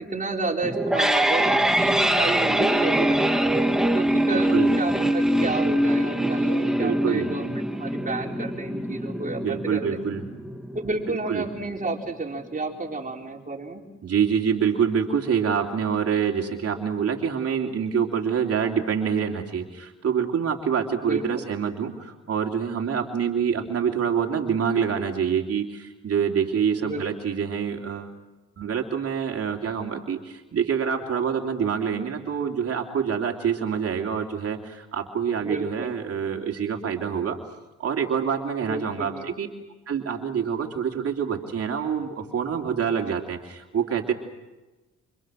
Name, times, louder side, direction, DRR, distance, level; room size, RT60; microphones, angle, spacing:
voice 1, 0.0-3.5 3.9-10.0 10.7-13.8 21.0-21.5 26.8-27.0 35.4-35.9 38.6-39.3, right 3 dB, 25° right, 2 dB, 4.2 m, -31 dB
sound 1, 0.6-11.6, right 1 dB, ahead, 2.1 m, -23 dB
voice 2, 4.3-4.8 6.8-7.3 9.4-10.2 11.3-11.5 14.0-28.1 28.6-37.4 37.8-39.5 39.9-44.1, right 7 dB, 50° right, 2 dB, 3.0 m, -26 dB
30.0 x 27.5 x 6.3 m, 1.1 s
cardioid pair, 90°, 30 cm